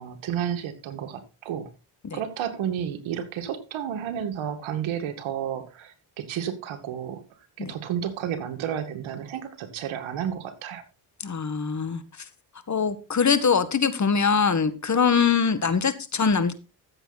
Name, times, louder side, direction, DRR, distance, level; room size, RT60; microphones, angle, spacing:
voice 1, 0.0-1.7 2.1-7.2 7.6-10.8, right 9 dB, 80° right, 2.2 m, -31 dB
voice 2, 11.2-12.0 12.7-16.5, left 6 dB, 35° left, 1.8 m, -23 dB
14.5 x 7.6 x 4.2 m
cardioid pair, 70°, 47 cm